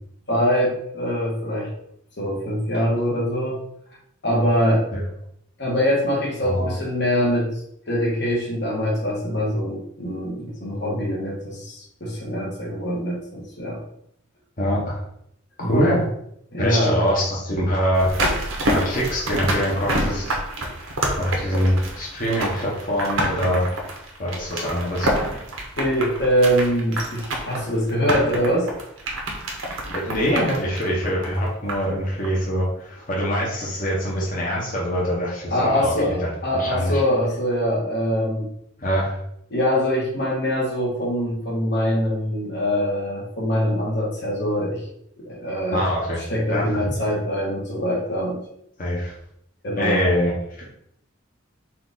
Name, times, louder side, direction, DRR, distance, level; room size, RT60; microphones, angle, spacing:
voice 1, 0.3-1.7 2.2-3.6 4.2-4.8 5.6-7.5 7.9-13.8 15.6-16.0 16.5-17.0 25.8-28.7 35.5-38.5 39.5-44.8 45.2-45.8 46.3-48.4 49.6-50.0, equal, 60° left, -4 dB, 1.3 m, -23 dB
voice 2, 14.6-15.0 15.7-16.0 16.6-20.4 21.2-23.6 24.2-25.2 29.9-36.2 36.5-37.0 38.8-39.2 45.7-46.2 46.5-46.8 48.8-49.1 49.7-50.7, equal, 45° left, -4 dB, 1.1 m, -24 dB
sound 1, 17.9-32.0 32.2-32.3, right 1 dB, 85° right, 0.9 m, -28 dB
4.3 x 2.5 x 3.9 m, 0.73 s
head